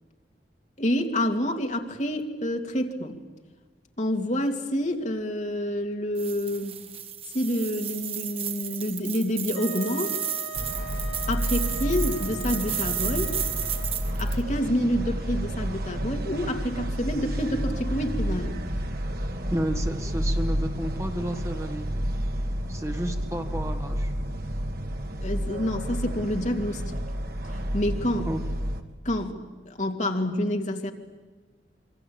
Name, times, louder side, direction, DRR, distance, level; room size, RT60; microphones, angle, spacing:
voice 1, 0.8-3.2 4.0-6.8 7.3-10.1 11.3-13.3 14.2-18.6 25.2-27.0 27.7-28.3 29.0-30.9, equal, 45° left, 3 dB, 2.6 m, -28 dB
sound 1, 6.2-14.4, right 10 dB, 35° right, 1.6 m, -33 dB
Wind instrument woodwind instrument, 9.6-14.2, equal, 75° left, 1.9 m, -40 dB
sound 2, 10.5-28.8, equal, 60° right, 1.8 m, -30 dB
voice 2, 19.5-22.0 22.7-24.1 28.3-28.4, equal, 15° right, 4 dB, 2.0 m, -32 dB
26.5 x 25.0 x 8.8 m, 1.3 s
head